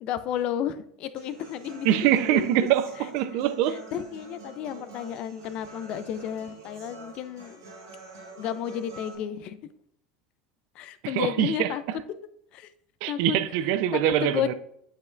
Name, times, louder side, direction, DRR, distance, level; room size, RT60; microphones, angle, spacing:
voice 1, 0.0-2.5 3.7-7.6 8.4-9.6 10.7-11.8 12.5-12.7 13.1-13.4 13.9-14.5, left 10 dB, 55° left, 0.5 m, -32 dB
Human voice / Acoustic guitar, 1.2-9.1, right 3 dB, 90° right, 1.9 m, -46 dB
voice 2, 1.8-3.8 11.2-11.7 13.0-14.5, right 11 dB, 65° right, 0.5 m, -24 dB
8.2 x 5.2 x 2.6 m
hypercardioid pair, 90°, 2 cm